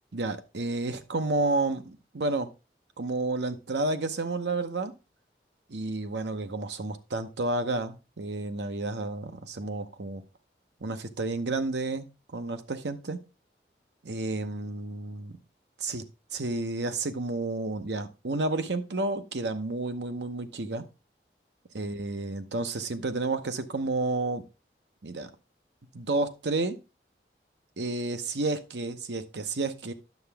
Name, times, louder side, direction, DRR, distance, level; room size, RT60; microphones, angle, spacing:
voice 1, 0.1-2.5 3.0-4.9 5.7-10.2 10.8-12.1 12.3-13.2 14.0-15.3 15.8-16.0 16.3-20.8 21.7-24.4 25.0-25.3 25.9-26.8 27.8-29.9, right 2 dB, 85° right, 9 dB, 0.9 m, -31 dB
9.4 x 6.9 x 3.4 m, 0.28 s
head